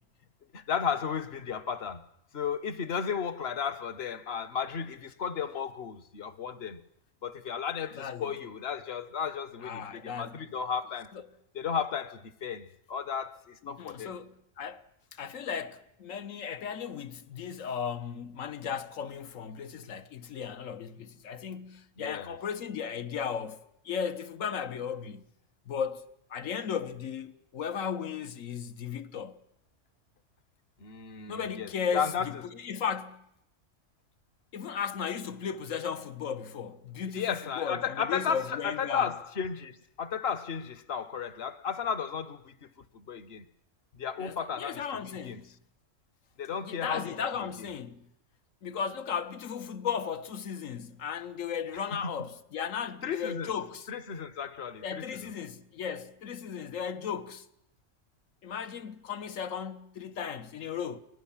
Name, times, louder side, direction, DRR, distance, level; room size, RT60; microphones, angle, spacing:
voice 1, 0.5-6.8 7.2-11.1 11.5-14.2 22.0-22.4 30.8-32.3 37.1-43.5 43.9-45.4 46.4-47.7 51.7-52.3 53.0-53.5 53.9-55.3, left 7 dB, 55° left, 1.2 m, -34 dB
voice 2, 8.0-8.3 9.6-10.3 13.6-14.8 15.1-25.3 25.7-26.0 26.3-29.4 31.3-32.3 32.6-33.2 34.5-39.1 44.2-45.5 46.6-48.1 48.6-53.9 54.8-57.5 58.4-61.0, left 7 dB, 80° left, 1.4 m, -36 dB
23.5 x 17.5 x 7.2 m
omnidirectional pair, 1.4 m